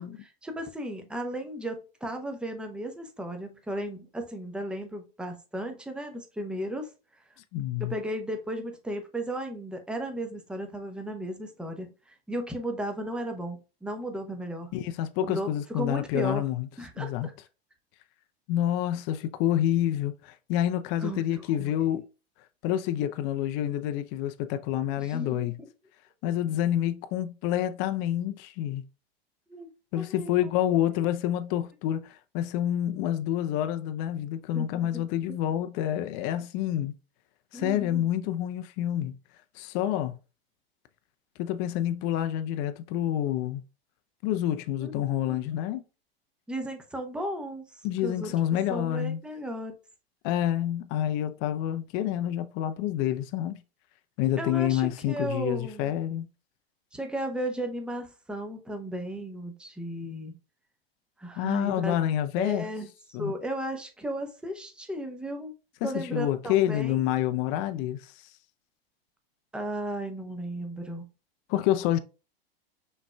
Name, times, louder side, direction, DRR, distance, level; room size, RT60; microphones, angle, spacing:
voice 1, 0.0-6.9 7.8-14.7 15.2-16.4 16.8-17.3 21.0-21.4 25.0-25.5 29.5-29.7 30.2-30.3 30.8-30.9 34.5-35.1 37.5-38.1 44.8-44.9 45.3-45.6 46.5-48.3 48.7-49.7 54.4-55.9 56.9-60.3 61.2-61.9 62.4-62.9 63.2-65.5 65.8-66.9 69.5-71.0, right 1 dB, 5° right, 0.8 m, -35 dB
voice 2, 7.5-7.9 14.7-16.7 17.0-17.3 18.5-22.0 22.6-25.6 26.2-28.8 29.9-36.9 37.5-39.1 39.5-40.2 41.4-43.6 44.2-45.8 47.8-49.2 50.2-53.6 54.2-56.3 61.4-62.7 63.1-63.3 65.8-68.1 71.5-72.0, left 12 dB, 40° left, 0.5 m, -28 dB
5.9 x 3.2 x 2.2 m
hypercardioid pair, 95°, 31 cm